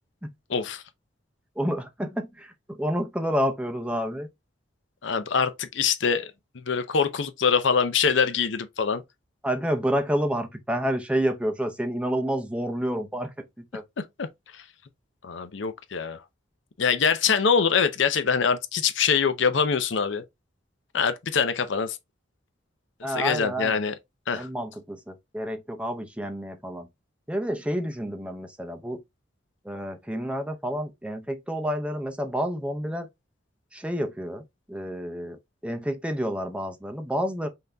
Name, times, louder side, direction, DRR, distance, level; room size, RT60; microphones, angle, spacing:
voice 1, 0.5-0.8 5.0-6.3 6.5-9.0 14.2-14.3 15.2-16.2 16.8-20.2 20.9-22.0 23.2-23.9 24.3-24.5, left 6 dB, 65° left, 0.6 m, -24 dB
voice 2, 1.6-4.3 9.4-13.3 13.7-13.8 23.0-23.8 24.3-26.9 27.3-29.0 29.6-33.1 33.7-37.5, equal, 5° right, 0.6 m, -29 dB
5.6 x 2.7 x 3.4 m
head